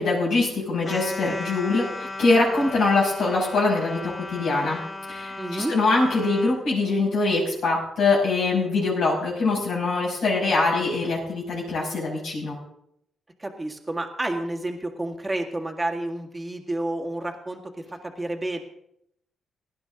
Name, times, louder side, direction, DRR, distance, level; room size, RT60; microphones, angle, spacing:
voice 1, 0.0-4.8 5.1-12.6, left 3 dB, 75° left, -3 dB, 5.9 m, -23 dB
sound 1, 0.8-6.6, left 2 dB, 35° left, 1.9 m, -36 dB
voice 2, 5.4-5.7 13.4-18.6, right 1 dB, 20° right, 2 dB, 2.0 m, -30 dB
17.5 x 10.5 x 3.8 m, 0.75 s
supercardioid pair, 60°, 0 cm